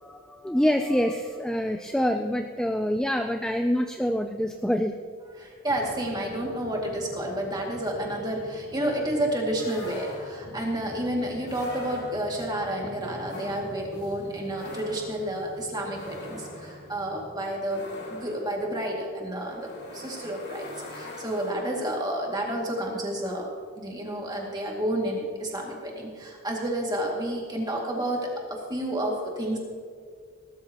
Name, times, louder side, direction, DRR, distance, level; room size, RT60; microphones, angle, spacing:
voice 1, 0.0-5.0, equal, 5° left, 5 dB, 0.3 m, -26 dB
voice 2, 5.4-17.8 18.1-23.5 23.8-29.6, right 1 dB, 20° right, -1 dB, 2.2 m, -30 dB
sound 1, 5.7-17.4, left 1 dB, 90° left, 3.8 m, -47 dB
sound 2, 9.6-10.6 11.4-12.5 13.2-22.0, left 1 dB, 50° left, 3.1 m, -43 dB
19.0 x 12.5 x 3.0 m, 2.1 s
head